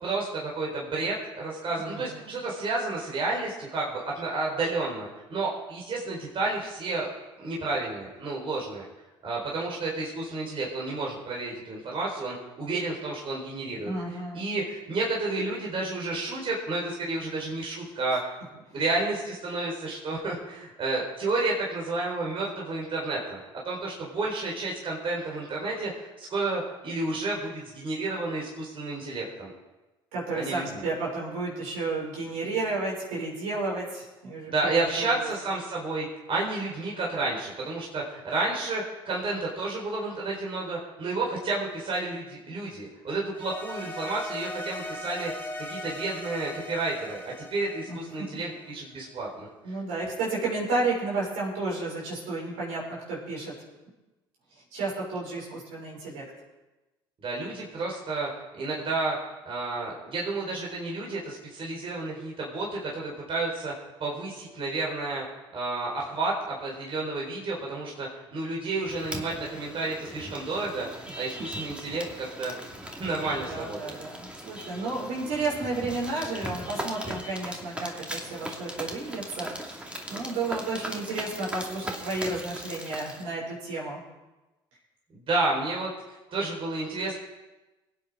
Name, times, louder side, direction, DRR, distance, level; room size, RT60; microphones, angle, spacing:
voice 1, 0.0-7.1 7.4-8.8 9.2-13.9 14.3-18.2 18.7-23.4 23.6-29.5 30.3-30.8 34.5-45.3 45.7-47.2 47.5-49.7 57.2-58.3 58.6-59.2 59.5-63.7 64.0-65.2 65.5-70.9 71.1-72.5 72.8-74.0 85.1-85.9 86.3-87.2, right 3 dB, 45° right, -3 dB, 4.5 m, -31 dB
voice 2, 1.8-2.3 13.8-14.5 30.1-35.3 47.9-48.4 49.6-53.5 54.7-56.2 73.5-84.0, right 3 dB, 75° right, -4 dB, 6.2 m, -32 dB
sound 1, 43.3-48.7, left 1 dB, 15° left, 3.9 m, -39 dB
sound 2, 68.8-83.2, equal, 10° right, 2.5 m, -39 dB
22.5 x 8.8 x 4.9 m, 1.1 s
hypercardioid pair, 65°, 12 cm